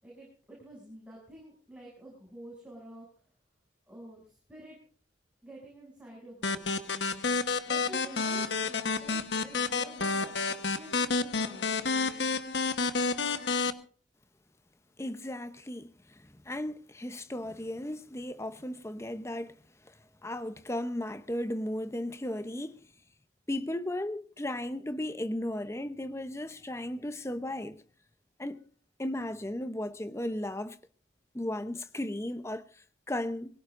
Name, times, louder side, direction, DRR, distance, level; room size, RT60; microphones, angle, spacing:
voice 1, 0.0-3.1 3.9-4.8 5.4-6.8 7.7-11.9, right 1 dB, 5° right, 7.3 m, -49 dB
sound 1, 6.4-13.7, left 4 dB, 70° left, 1.3 m, -30 dB
voice 2, 15.0-19.6 19.8-20.0 20.2-22.8 23.5-27.8 28.4-28.6 29.0-30.8 31.3-33.6, left 1 dB, 15° left, 0.7 m, -35 dB
23.0 x 17.0 x 2.6 m
head